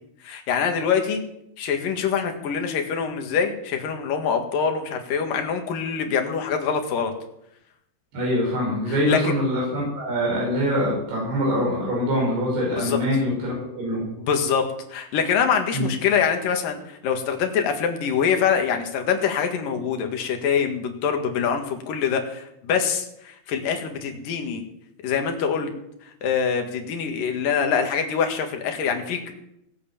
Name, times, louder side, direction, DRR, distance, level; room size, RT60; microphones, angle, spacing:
voice 1, 0.2-1.2 1.6-7.1 8.9-9.3 12.8-13.0 14.2-14.6 14.9-24.6 25.0-25.7 26.2-29.3, left 7 dB, 65° left, 4 dB, 3.5 m, -24 dB
voice 2, 8.1-14.0 15.7-15.9, equal, 85° right, -4 dB, 7.2 m, -24 dB
19.0 x 8.4 x 7.2 m, 0.78 s
omnidirectional pair, 4.4 m